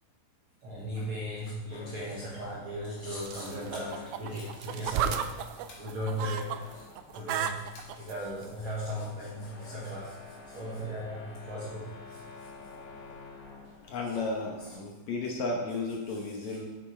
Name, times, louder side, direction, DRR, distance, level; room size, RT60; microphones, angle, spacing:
voice 1, 0.6-6.8 7.1-10.2 10.5-12.5 14.6-14.7 16.4-16.6, equal, 60° right, -5 dB, 1.5 m, -37 dB
sound 1, 1.7-14.8, left 3 dB, 80° left, 3.3 m, -50 dB
sound 2, 3.2-6.6 6.9-8.1 8.9-9.0, right 9 dB, 90° right, 1.7 m, -33 dB
sound 3, 3.7-4.0 5.7-5.9 7.7-8.0, left 2 dB, 45° left, 1.9 m, -52 dB
voice 2, 13.9-16.8, left 3 dB, 65° left, 0 dB, 2.0 m, -33 dB
8.5 x 6.9 x 4.3 m, 1.1 s
omnidirectional pair, 4.1 m